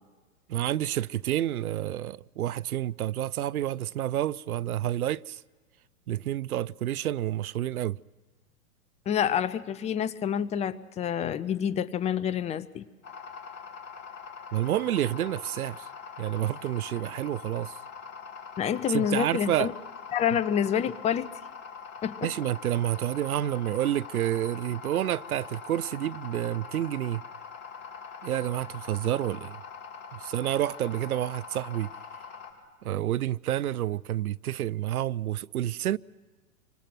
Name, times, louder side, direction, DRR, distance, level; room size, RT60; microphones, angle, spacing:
voice 1, 0.5-5.4 6.1-8.0 14.5-15.9 16.2-17.7 18.9-19.7 22.2-27.2 28.2-29.6 30.1-31.9 32.8-36.0, right 12 dB, 80° right, 0.6 m, -29 dB
voice 2, 9.1-12.8 18.6-19.7 20.1-21.3 22.0-22.3 32.9-33.0, left 9 dB, 15° left, 0.6 m, -28 dB
sound 1, 13.0-32.5, left 6 dB, 55° left, 6.0 m, -43 dB
28.0 x 25.0 x 6.1 m
hypercardioid pair, 115°, 43 cm